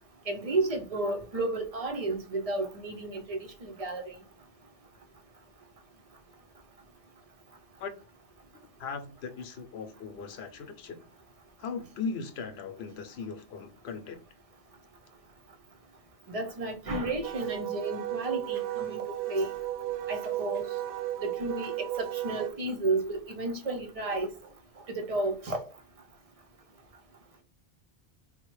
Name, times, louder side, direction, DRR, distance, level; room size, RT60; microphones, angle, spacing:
voice 1, 0.3-4.1 16.3-19.0 19.3-19.5 20.1-20.7 21.2-24.3 24.9-25.6, right 2 dB, 45° right, 0.5 m, -32 dB
voice 2, 8.8-11.1 11.6-14.2, left 5 dB, 75° left, 0.8 m, -38 dB
Wind instrument woodwind instrument, 17.2-22.5, right 13 dB, 75° right, 0.8 m, -34 dB
4.0 x 2.1 x 3.0 m
omnidirectional pair, 1.1 m